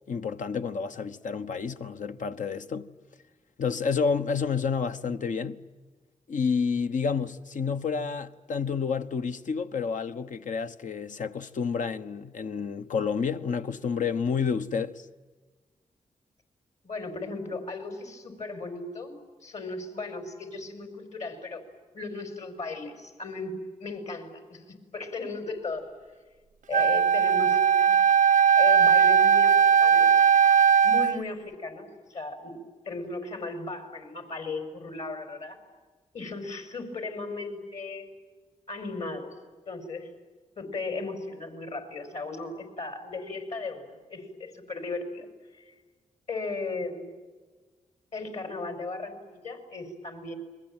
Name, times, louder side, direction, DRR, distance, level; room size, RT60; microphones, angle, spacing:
voice 1, 0.1-2.9 3.6-5.6 6.3-15.1, left 5 dB, 75° left, 1.2 m, -29 dB
voice 2, 16.8-19.2 19.4-21.6 21.9-23.5 23.8-24.6 24.9-25.9 26.7-27.6 27.9-28.0 28.6-29.5 29.8-30.1 30.8-32.5 32.9-35.6 36.1-38.1 38.7-39.3 39.7-40.1 40.6-45.3 46.3-47.1 48.1-50.3, left 3 dB, 60° left, 5.6 m, -36 dB
Wind instrument woodwind instrument, 26.7-31.2, right 7 dB, 90° right, 0.8 m, -19 dB
29.5 x 22.5 x 9.0 m
wide cardioid pair, 95°, 13 cm